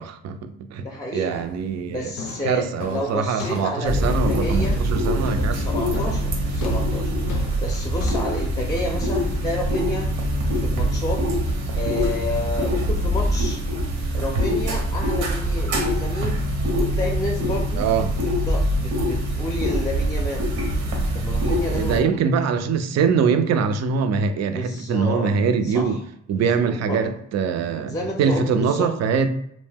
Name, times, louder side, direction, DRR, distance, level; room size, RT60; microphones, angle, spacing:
voice 1, 0.0-0.9 1.1-2.1 2.4-5.6 17.8-18.1 21.7-26.0 26.3-29.3, right 5 dB, 60° right, 0.4 m, -23 dB
voice 2, 0.8-1.5 1.9-4.8 5.5-7.1 7.6-10.1 10.6-11.2 11.8-13.6 14.1-16.4 16.7-17.9 18.5-20.4 21.1-22.2 24.5-25.3 25.6-26.0 26.3-27.0 27.9-28.9, left 1 dB, 10° left, 0.5 m, -30 dB
sound 1, 1.3-1.7 2.2-10.2, left 3 dB, 75° left, 0.6 m, -35 dB
sound 2, 3.9-22.0, equal, 90° right, 0.8 m, -24 dB
2.6 x 2.1 x 3.4 m
cardioid pair, 90°, 30 cm